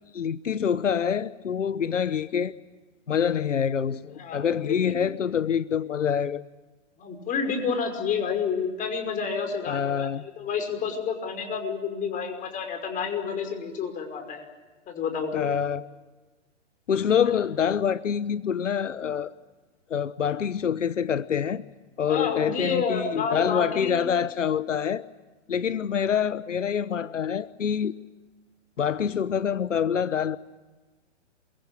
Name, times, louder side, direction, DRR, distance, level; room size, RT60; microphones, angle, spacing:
voice 1, 0.1-2.5 3.1-6.4 9.7-10.2 15.3-15.8 16.9-19.3 19.9-21.6 22.0-25.0 25.5-27.9 28.8-30.4, left 8 dB, 85° left, 1.0 m, -26 dB
voice 2, 4.2-5.0 7.0-14.5 14.9-15.5 22.1-24.0, left 6 dB, 20° left, 5.5 m, -29 dB
27.5 x 23.0 x 8.9 m
hypercardioid pair, 130°, 36 cm